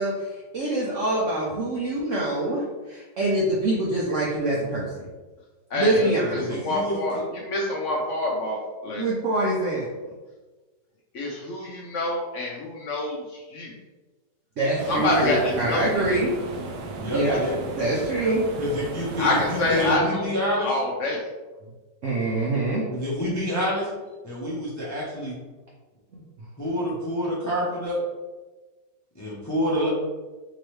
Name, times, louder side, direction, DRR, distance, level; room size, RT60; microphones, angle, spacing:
voice 1, 0.0-4.9 5.7-6.5 9.0-9.9 14.6-16.3 17.1-17.4 17.8-18.5 22.0-22.9 26.1-26.2, right 2 dB, 65° right, -4 dB, 0.7 m, -25 dB
voice 2, 5.7-6.1 6.3-9.1 11.1-13.7 14.9-16.0 19.2-20.2 20.5-21.2, left 2 dB, 70° left, -2 dB, 0.7 m, -26 dB
voice 3, 6.3-7.0 17.0-17.5 18.6-20.7 22.9-23.9 24.2-25.4 26.6-28.0 29.1-29.9, equal, 25° left, -7 dB, 0.4 m, -27 dB
sound 1, 14.8-20.0, right 3 dB, 80° right, 1.2 m, -35 dB
3.8 x 2.9 x 3.1 m, 1.2 s
omnidirectional pair, 1.9 m